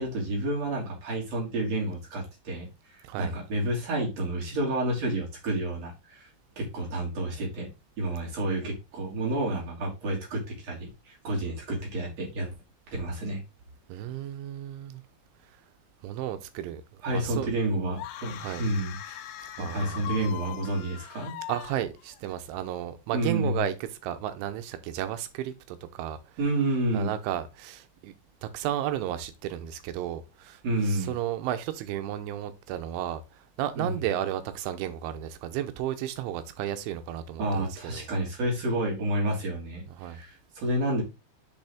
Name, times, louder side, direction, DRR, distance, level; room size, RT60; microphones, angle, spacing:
voice 1, 0.0-2.7 2.9-6.3 6.6-7.7 8.0-12.5 12.9-13.4 17.0-19.0 19.6-21.3 23.1-23.7 26.4-27.1 30.6-31.1 33.8-34.0 37.4-41.0, right 1 dB, 40° right, 3.0 m, -30 dB
voice 2, 3.0-3.3 13.9-15.0 16.0-17.5 18.3-18.6 19.6-20.1 21.5-26.2 26.9-28.1 28.4-38.1 40.0-40.2, right 11 dB, 85° right, 3.2 m, -33 dB
sound 1, 17.9-22.3, left 12 dB, 90° left, 2.3 m, -41 dB
7.0 x 5.3 x 3.5 m
omnidirectional pair, 5.5 m